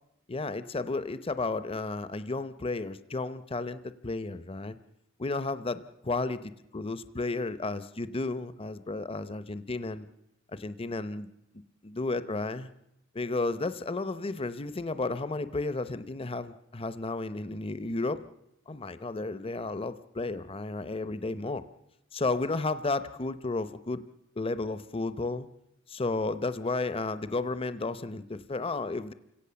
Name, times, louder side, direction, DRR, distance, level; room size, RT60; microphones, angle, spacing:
voice 1, 0.3-4.8 5.2-10.1 10.5-12.7 13.1-18.2 18.7-21.6 22.1-24.0 24.4-25.5 25.9-29.1, left 3 dB, 30° left, 13 dB, 0.7 m, -33 dB
29.0 x 17.0 x 6.9 m, 0.87 s
head